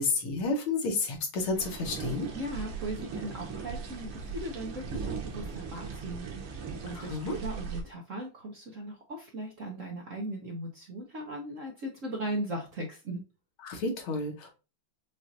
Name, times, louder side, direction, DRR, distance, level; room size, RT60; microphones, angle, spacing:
voice 1, 0.0-2.3 7.0-7.4 13.6-14.5, left 3 dB, 75° left, 2 dB, 2.1 m, -31 dB
sound 1, 1.6-7.8, right 5 dB, 90° right, 2.0 m, -38 dB
voice 2, 2.3-13.2, right 1 dB, 55° right, 0 dB, 0.9 m, -38 dB
6.2 x 2.5 x 2.5 m, 0.31 s
omnidirectional pair, 2.3 m